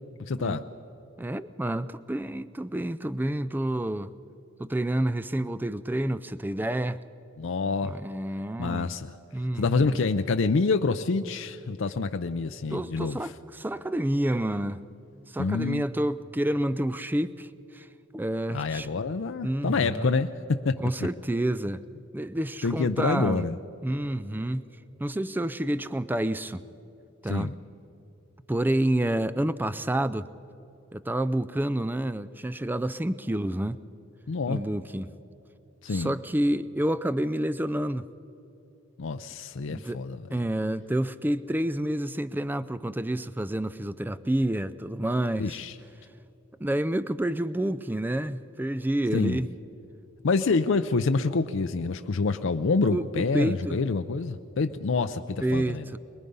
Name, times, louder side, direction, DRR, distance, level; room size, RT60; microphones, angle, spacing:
voice 1, 0.2-0.6 7.4-8.0 8.6-9.1 9.6-13.2 15.4-15.9 18.5-20.8 22.6-23.6 27.3-27.5 34.3-34.6 35.8-36.1 39.0-40.2 45.4-45.7 49.1-49.4 50.2-55.9, left 4 dB, 70° left, 8 dB, 0.5 m, -27 dB
voice 2, 1.2-4.1 4.6-7.0 7.8-8.9 9.3-10.0 12.7-14.8 15.3-17.9 18.1-18.9 19.4-20.2 20.8-21.8 22.1-23.5 23.8-24.7 25.0-26.7 27.2-27.5 28.5-30.3 30.9-33.8 34.5-35.1 35.9-38.0 39.6-40.0 40.3-45.6 46.6-49.5 52.9-53.8 55.4-56.0, right 1 dB, 10° right, 14 dB, 0.4 m, -29 dB
23.5 x 21.0 x 5.4 m, 2.9 s
head